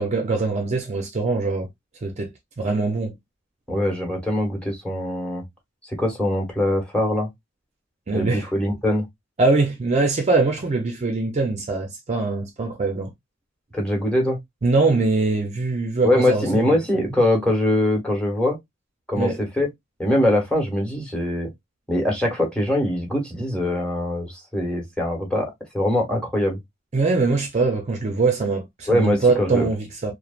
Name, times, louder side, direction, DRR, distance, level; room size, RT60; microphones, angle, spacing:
voice 1, 0.0-1.7 2.0-2.3 2.6-3.2 8.1-8.5 9.4-13.1 14.6-16.8 19.2-19.4 26.9-30.1, right 3 dB, 35° right, 0.5 m, -22 dB
voice 2, 3.7-5.4 5.9-7.3 8.1-9.1 13.7-14.4 16.0-18.6 19.1-19.7 20.0-21.5 21.9-26.6 28.9-29.7, left 1 dB, 5° left, 1.0 m, -22 dB
3.1 x 2.1 x 2.3 m
head